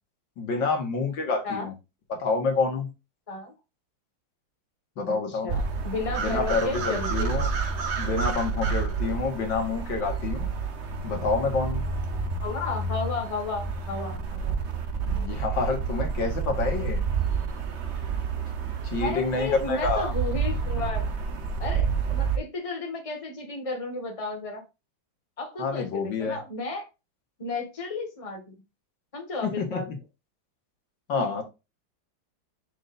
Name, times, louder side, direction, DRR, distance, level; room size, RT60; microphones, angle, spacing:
voice 1, 0.4-1.7 2.1-2.9 5.0-5.5 6.2-7.5 8.0-10.5 11.0-11.8 15.1-17.0 18.9-20.1 25.6-26.4 29.4-29.8 31.1-31.4, left 4 dB, 70° left, 3 dB, 2.1 m, -28 dB
voice 2, 5.1-7.3 12.3-14.5 19.0-21.0 21.6-24.6 25.4-26.9 27.4-28.5 29.1-29.9 31.1-31.3, left 3 dB, 20° left, 2 dB, 1.6 m, -33 dB
sound 1, 5.5-22.4, right 5 dB, 45° right, 1.0 m, -29 dB
6.6 x 6.1 x 2.6 m, 0.26 s
omnidirectional pair, 2.1 m